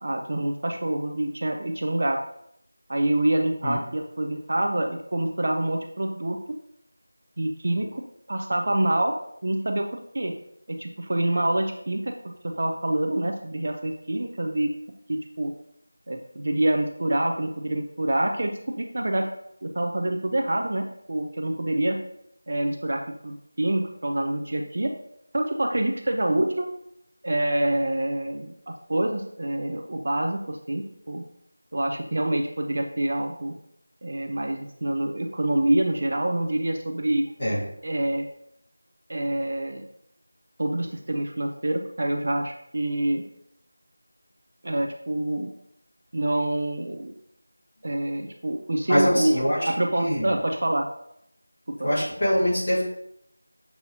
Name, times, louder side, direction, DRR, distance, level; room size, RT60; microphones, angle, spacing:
voice 1, 0.0-2.2 2.9-6.4 7.4-9.1 9.4-9.9 10.1-10.3 10.7-12.1 12.4-14.7 15.1-15.5 16.1-19.3 19.6-22.0 22.5-24.9 25.3-26.7 27.2-31.2 31.7-33.6 34.0-37.3 37.8-38.3 39.1-39.8 40.6-43.2 44.6-45.5 46.1-47.1 47.8-50.9 51.8-51.9, right 1 dB, 45° right, 3 dB, 0.4 m, -26 dB
voice 2, 48.9-50.3 51.8-52.8, equal, 25° left, -8 dB, 1.8 m, -24 dB
6.7 x 2.8 x 2.8 m, 0.73 s
figure-of-eight pair, 175°, 0 cm